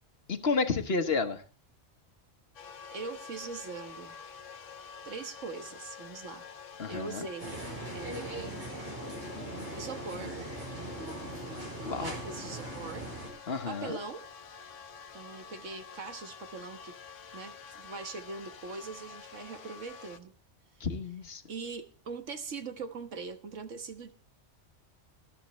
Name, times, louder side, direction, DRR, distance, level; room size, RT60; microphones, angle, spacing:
voice 1, 0.3-1.4 6.8-7.3 11.8-12.1 13.5-14.0 20.8-21.4, left 4 dB, 55° left, 8 dB, 1.4 m, -31 dB
sound 1, 2.5-20.2, left 6 dB, 85° left, 1.3 m, -48 dB
voice 2, 2.9-4.2 5.0-6.4 6.9-7.6 7.9-8.7 9.7-10.4 12.0-13.1 13.7-14.3 15.1-17.0 17.3-20.3 20.7-20.8 21.5-24.1, right 4 dB, 90° right, 7 dB, 1.7 m, -41 dB
sound 2, 7.4-13.3, right 1 dB, 65° right, 5.7 m, -40 dB
18.5 x 13.0 x 3.2 m, 0.36 s
omnidirectional pair, 1.2 m